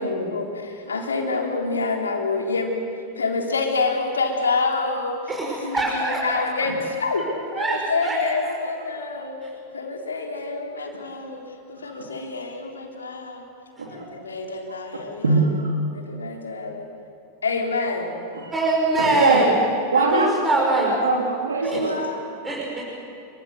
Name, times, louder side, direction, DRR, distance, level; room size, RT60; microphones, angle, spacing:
voice 1, 0.0-7.3 7.5-9.4 9.7-11.4 11.7-13.5 13.9-15.4 15.9-16.9 17.4-18.3 21.7-22.0, left 3 dB, 75° left, 1 dB, 3.6 m, -27 dB
voice 2, 5.3-6.7 7.6-8.3 13.9-14.0 18.5-19.6 19.9-20.9 21.6-21.9 22.4-22.8, right 2 dB, 15° right, -3 dB, 5.6 m, -23 dB
voice 3, 15.2-15.8 18.3-18.5 19.2-19.4 19.9-22.2, right 3 dB, 70° right, 0 dB, 3.5 m, -22 dB
28.0 x 24.0 x 6.7 m, 2.5 s
figure-of-eight pair, 90°, 0 cm